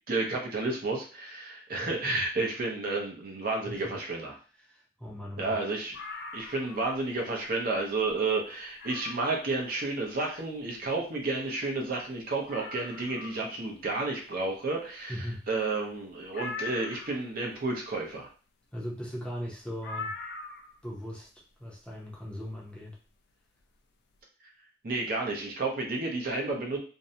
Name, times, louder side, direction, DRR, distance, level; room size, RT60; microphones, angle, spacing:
voice 1, 0.1-4.4 5.4-5.9 6.3-18.3 24.8-26.8, right 3 dB, 55° right, 0 dB, 0.6 m, -31 dB
voice 2, 1.8-2.3 3.6-4.0 4.6-5.6 6.4-6.5 15.1-15.5 18.7-20.1 20.8-21.3 21.6-23.0, equal, 5° left, -3 dB, 0.6 m, -39 dB
sound 1, 5.9-7.0 7.4-7.5 8.0-8.1 8.8-9.4 11.2-11.3 11.4-11.5 12.0-12.1 12.5-13.5 16.3-17.3 19.8-20.8 22.1-22.2, left 4 dB, 60° left, 0.4 m, -41 dB
2.6 x 2.1 x 2.7 m, 0.38 s
head